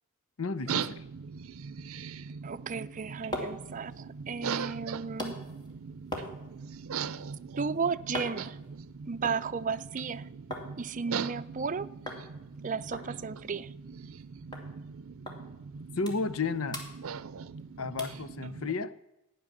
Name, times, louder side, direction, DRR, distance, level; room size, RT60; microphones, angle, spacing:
voice 1, 0.4-1.0 15.9-16.8 17.8-19.0, left 4 dB, 80° left, 0.7 m, -32 dB
sound 1, 0.7-18.8, right 6 dB, 85° right, 0.6 m, -40 dB
voice 2, 2.4-5.4 7.6-8.6 9.1-10.2 10.8-11.9 12.6-13.7, right 5 dB, 40° right, 0.5 m, -34 dB
sound 2, 2.8-10.7 11.0-11.7 12.1-12.3 12.5-12.6 12.9-14.2 14.5-14.7 15.3-15.4 15.8-16.4 16.7-17.6 18.0-18.3 18.8-18.9, left 1 dB, 20° left, 2.6 m, -42 dB
14.5 x 10.0 x 7.3 m
head